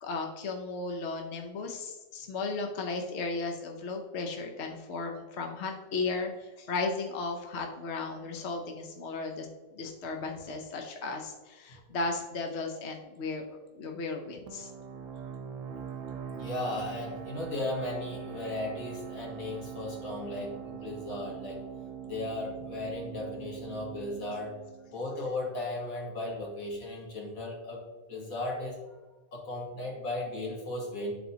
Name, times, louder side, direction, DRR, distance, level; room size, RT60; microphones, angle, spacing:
voice 1, 0.0-9.5 9.7-13.4 13.7-14.7, left 3 dB, 55° left, 3 dB, 0.9 m, -35 dB
sound 1, 14.5-25.8, right 8 dB, 65° right, 1.0 m, -43 dB
voice 2, 16.3-21.6 22.1-24.6 24.9-27.8 28.1-28.8 29.3-31.1, left 2 dB, 75° left, -2 dB, 2.1 m, -36 dB
11.5 x 4.1 x 2.8 m, 1.2 s
omnidirectional pair, 1.5 m